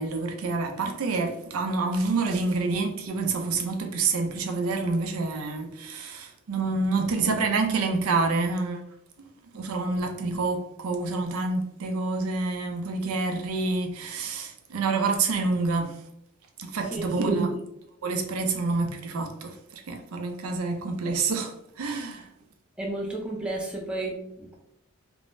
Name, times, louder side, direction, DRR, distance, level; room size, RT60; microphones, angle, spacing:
voice 1, 0.0-8.8 9.5-16.0 16.6-17.5 18.0-22.3, right 3 dB, 75° right, 0.4 m, -27 dB
voice 2, 22.8-24.6, right 2 dB, 5° right, 0.4 m, -32 dB
3.5 x 2.0 x 2.5 m
head